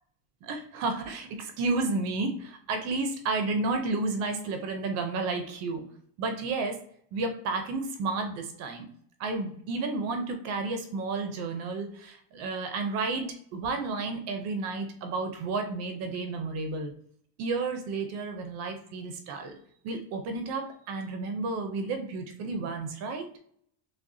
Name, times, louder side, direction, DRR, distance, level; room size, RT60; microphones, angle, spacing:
voice 1, 0.4-5.8 6.2-6.8 7.1-8.9 9.2-13.3 13.5-16.9 17.4-19.5 19.8-23.3, right 3 dB, 40° right, 5 dB, 0.6 m, -31 dB
6.2 x 2.2 x 2.6 m, 0.64 s
cardioid pair, 165°, 43 cm